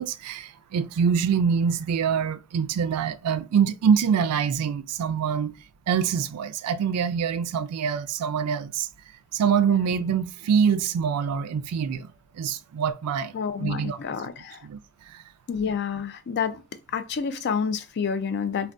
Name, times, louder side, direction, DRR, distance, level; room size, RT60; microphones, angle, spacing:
voice 1, 0.0-5.5 5.9-8.9 9.3-14.0 14.6-14.8 15.1-15.2, right 7 dB, 90° right, 0.3 m, -25 dB
voice 2, 13.3-14.7 15.5-16.6 16.9-18.7, left 6 dB, 50° left, 0.4 m, -29 dB
2.5 x 2.2 x 3.4 m
head